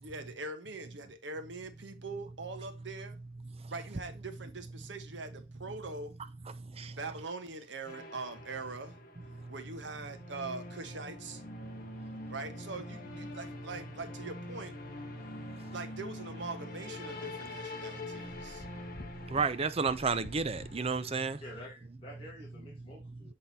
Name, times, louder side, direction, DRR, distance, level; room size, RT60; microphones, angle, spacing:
voice 1, 0.0-3.2 3.7-6.2 6.9-8.9 9.5-11.4 12.3-14.7 15.7-18.7, right 3 dB, 70° right, 1.2 m, -42 dB
voice 2, 6.5-7.0 9.3-9.5 11.6-12.3 15.1-15.7 17.9-18.4 18.7-21.4, right 4 dB, 35° right, 0.6 m, -35 dB
sound 1, 7.9-21.3, left 2 dB, 50° left, 1.3 m, -45 dB
voice 3, 21.4-23.3, left 1 dB, 30° left, 2.2 m, -49 dB
7.9 x 3.9 x 4.1 m
head